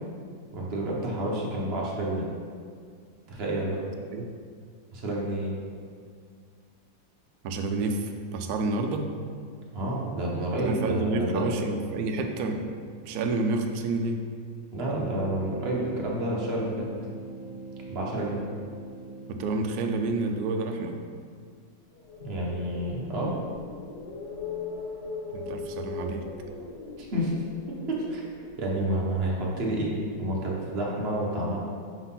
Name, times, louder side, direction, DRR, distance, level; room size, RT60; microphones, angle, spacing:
voice 1, 0.5-2.3 3.3-3.8 4.9-5.6 9.7-11.4 14.7-16.9 17.9-18.4 22.2-23.3 27.0-27.3 27.7-28.2 28.6-29.9 30.2-31.6, right 1 dB, 40° right, -3 dB, 1.0 m, -29 dB
voice 2, 7.4-9.1 10.6-12.7 13.0-14.3 19.3-21.0 25.3-26.2, right 3 dB, 70° right, 5 dB, 0.9 m, -29 dB
sound 1, 14.7-21.4, right 2 dB, 70° left, 1.2 m, -43 dB
sound 2, 21.9-30.0, left 3 dB, 45° left, 1.0 m, -40 dB
4.8 x 4.0 x 5.6 m, 2.1 s
omnidirectional pair, 2.1 m